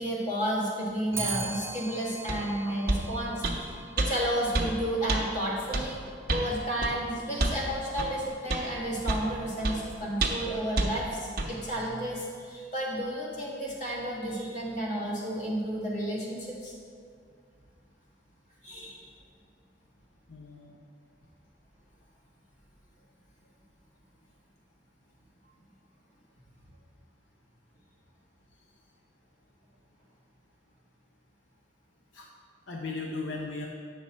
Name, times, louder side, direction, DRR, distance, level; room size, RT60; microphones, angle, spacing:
voice 1, 0.0-3.4 4.0-6.0 6.3-16.7 18.6-19.1, right 1 dB, 40° left, -4 dB, 1.8 m, -32 dB
Clock, 1.1-10.5, right 4 dB, 15° right, 0.3 m, -43 dB
sound 1, 2.3-2.4 2.9-3.1 3.4-3.6 4.0-4.1 4.5-4.7 5.1-5.2 5.7-5.9 6.3-6.5 6.8-7.0 7.4-7.6 8.0-8.1 8.5-8.7 9.1-9.3 9.6-9.8 10.2-10.5 10.8-10.9 11.4-11.5, right 2 dB, 55° right, 0.9 m, -27 dB
voice 2, 20.3-20.8 32.1-32.3 32.7-33.7, left 3 dB, 75° left, 0 dB, 0.7 m, -37 dB
8.4 x 6.4 x 4.2 m, 2.2 s
head